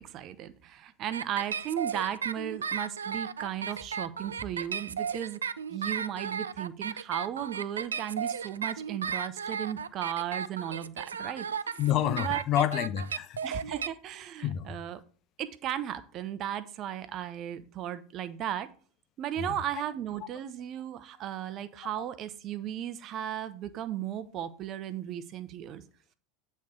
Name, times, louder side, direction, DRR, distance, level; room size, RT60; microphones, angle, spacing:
voice 1, 0.0-5.4 5.7-11.5 12.2-12.4 13.4-15.0 15.4-18.7 19.2-25.8, right 10 dB, 40° right, 0.7 m, -35 dB
sound 1, 1.1-13.9, right 6 dB, 80° right, 0.3 m, -34 dB
voice 2, 11.8-13.4 14.4-14.8 19.4-19.6, left 11 dB, 40° left, 0.5 m, -28 dB
8.4 x 4.3 x 4.9 m
figure-of-eight pair, 80°, 0 cm